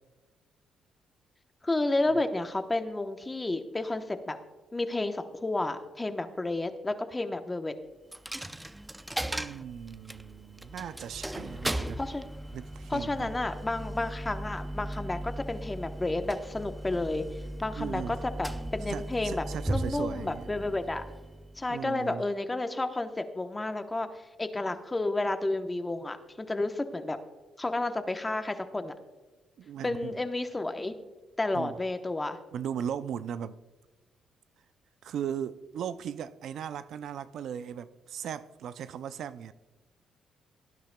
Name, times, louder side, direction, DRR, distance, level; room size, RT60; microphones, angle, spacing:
voice 1, 1.6-4.4 4.7-7.7 12.0-12.3 12.9-17.2 17.6-21.0 21.6-27.2 27.6-28.9 29.8-30.9 31.4-32.4, left 2 dB, 20° left, 0.9 m, -31 dB
Coin (dropping), 8.1-21.8, right 1 dB, 5° right, 0.5 m, -37 dB
voice 2, 9.3-12.0 12.5-13.3 17.8-18.2 18.9-20.5 21.7-22.2 29.6-30.2 31.5-31.7 32.5-33.6 35.0-39.5, right 8 dB, 70° right, 0.4 m, -37 dB
17.5 x 10.0 x 2.2 m
cardioid pair, 90°, 0 cm